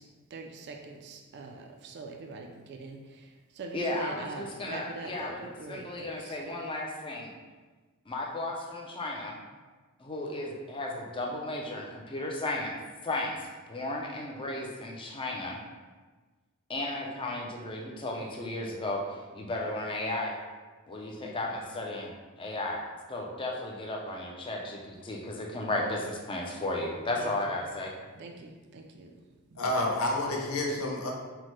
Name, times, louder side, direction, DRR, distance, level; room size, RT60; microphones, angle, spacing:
voice 1, 0.0-6.4 27.2-27.6 28.1-29.6, right 3 dB, 50° right, 3 dB, 0.3 m, -44 dB
voice 2, 3.7-7.3 8.1-9.4 10.0-12.8 13.0-15.6 16.7-20.4 20.9-22.8 23.1-28.0, left 2 dB, 20° left, 0 dB, 0.5 m, -34 dB
voice 3, 29.6-31.1, left 1 dB, 65° left, -1 dB, 0.6 m, -29 dB
5.7 x 2.1 x 3.1 m, 1.3 s
head